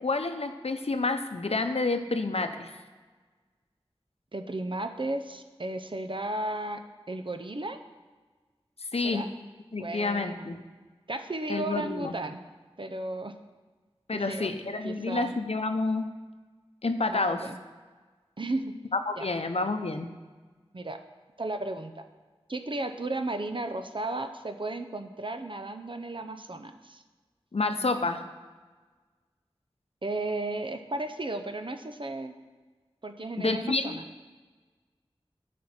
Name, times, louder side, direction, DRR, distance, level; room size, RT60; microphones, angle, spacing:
voice 1, 0.0-2.7 8.9-9.2 9.7-10.6 11.5-12.1 14.1-16.1 16.8-17.4 19.1-20.1 27.5-28.2 33.4-34.0, left 3 dB, 75° left, 8 dB, 0.7 m, -29 dB
voice 2, 4.3-6.8 7.1-7.8 9.0-9.3 9.8-10.5 11.1-12.4 12.8-13.3 14.1-14.5 14.8-15.3 17.1-17.6 18.4-18.7 19.2-19.3 20.7-21.0 21.4-22.1 22.5-27.0 30.0-32.3 33.0-34.0, right 2 dB, 55° right, 8 dB, 0.7 m, -34 dB
9.6 x 5.2 x 5.9 m, 1.4 s
wide cardioid pair, 40°, 10 cm